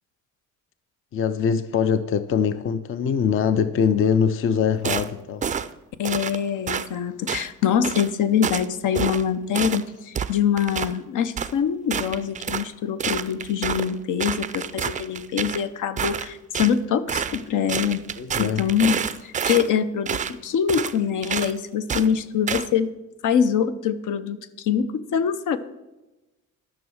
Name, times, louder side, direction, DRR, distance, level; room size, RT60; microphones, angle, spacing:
voice 1, 1.1-5.4 18.2-18.6, left 7 dB, 40° left, 0.5 m, -22 dB
sound 1, 4.8-5.1 5.4-5.7 6.0-6.4 6.7-6.9 7.3-7.5 7.8-8.1 8.4-8.7 8.9-9.2 9.5-9.8 10.1-10.9 11.4-11.5 11.9-12.7 13.0-13.9 14.2-15.6 16.0-16.7 17.1-17.4 17.7-19.7 20.1-20.3 20.7-21.0 21.2-21.5 21.9-22.1 22.5-22.7, right 7 dB, 25° right, 0.4 m, -28 dB
voice 2, 6.0-18.0 18.4-22.9 23.2-25.6, left 8 dB, 70° left, 0.8 m, -24 dB
12.0 x 6.2 x 6.3 m
cardioid pair, 140°, 32 cm